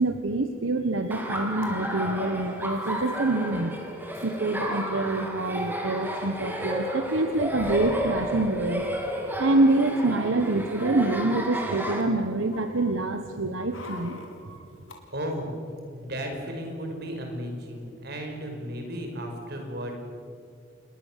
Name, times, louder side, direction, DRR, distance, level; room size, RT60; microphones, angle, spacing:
voice 1, 0.0-3.8 4.2-8.9 9.4-14.6, right 2 dB, 75° right, 7 dB, 1.3 m, -26 dB
sound 1, 1.1-1.2 1.4-1.7 2.7-3.2 3.5-3.6 3.8-4.4 5.2-5.3 5.5-5.7 7.3-8.5 9.0-9.4 10.0-11.7 12.1-15.0 15.3-15.4, left 2 dB, 80° left, 3.9 m, -47 dB
Laughter, 1.1-12.0, equal, 10° right, 3.2 m, -32 dB
Thunder, 7.2-9.5, left 1 dB, 35° left, 2.3 m, -43 dB
voice 2, 15.1-15.5 15.9-19.9, equal, 55° right, 3 dB, 5.2 m, -34 dB
28.5 x 21.0 x 7.5 m, 2.4 s
head